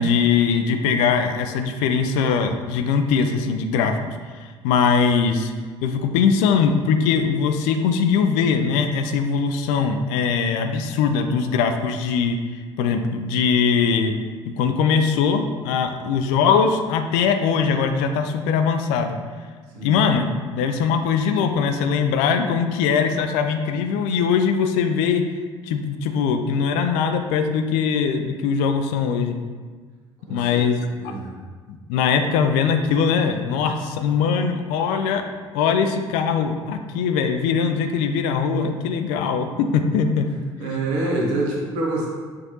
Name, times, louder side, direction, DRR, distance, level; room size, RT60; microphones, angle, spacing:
voice 1, 0.0-4.1 4.4-5.5 5.8-14.1 14.5-19.2 19.8-25.2 25.7-29.4 30.3-30.8 31.0-31.1 31.7-35.2 35.5-40.3, left 6 dB, 60° left, 6 dB, 0.4 m, -21 dB
voice 2, 30.3-30.6 31.0-31.3 40.6-42.1, right 2 dB, 60° right, -2 dB, 0.9 m, -26 dB
5.8 x 2.5 x 2.8 m, 1.5 s
figure-of-eight pair, 55°, 15 cm